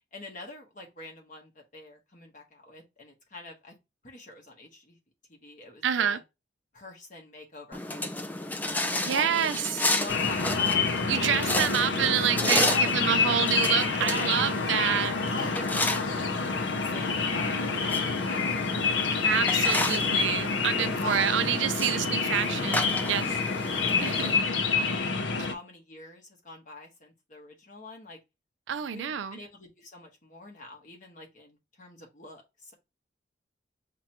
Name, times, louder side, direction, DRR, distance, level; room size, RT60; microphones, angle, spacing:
voice 1, 0.1-3.7 4.0-5.0 5.3-6.2 6.7-8.2 8.9-9.5 9.8-10.9 12.5-12.9 14.0-14.4 15.3-18.7 20.7-21.3 21.7-22.2 23.9-25.1 25.4-28.2 28.9-32.7, left 2 dB, 45° left, 1.1 m, -43 dB
voice 2, 5.8-6.2 9.0-9.9 11.1-15.3 19.2-23.7 24.0-24.3 28.7-29.4, right 8 dB, 80° right, 0.4 m, -28 dB
sound 1, 7.7-24.3, left 2 dB, 10° left, 0.3 m, -32 dB
sound 2, 10.1-25.5, left 4 dB, 70° left, 0.6 m, -28 dB
5.8 x 2.2 x 2.9 m
head